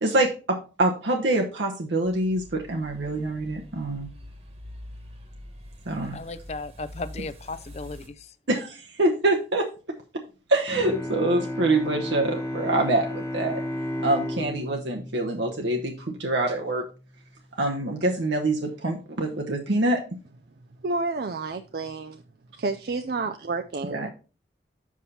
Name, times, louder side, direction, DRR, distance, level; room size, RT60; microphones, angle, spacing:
voice 1, 0.0-4.1 5.9-6.2 8.5-9.7 10.5-13.6 14.0-16.8 17.6-20.0 23.9-24.1, right 2 dB, 75° right, 0.9 m, -25 dB
sound 1, 2.0-8.1, left 1 dB, 35° right, 1.3 m, -45 dB
voice 2, 6.1-8.3, left 3 dB, 35° left, 0.5 m, -36 dB
Bowed string instrument, 10.7-16.3, left 1 dB, 15° left, 0.9 m, -33 dB
voice 3, 20.8-22.2 22.6-24.1, right 3 dB, 55° right, 0.4 m, -30 dB
7.3 x 5.6 x 4.2 m
head